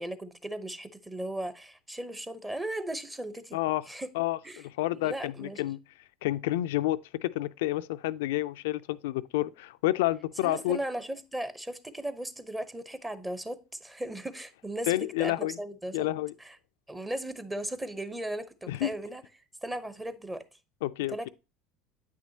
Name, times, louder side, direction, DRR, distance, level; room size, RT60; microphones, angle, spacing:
voice 1, 0.0-3.6 3.9-4.1 4.4-4.6 4.9-5.6 10.4-16.1 16.4-16.6 16.9-19.2 19.6-20.4 21.1-21.3, right 1 dB, 10° right, 0.8 m, -37 dB
voice 2, 3.5-3.8 4.1-5.8 6.2-10.8 14.9-15.6 15.9-16.3 18.7-18.9 20.8-21.3, left 16 dB, 80° left, 0.4 m, -29 dB
8.8 x 6.1 x 2.8 m
supercardioid pair, 90°, 0 cm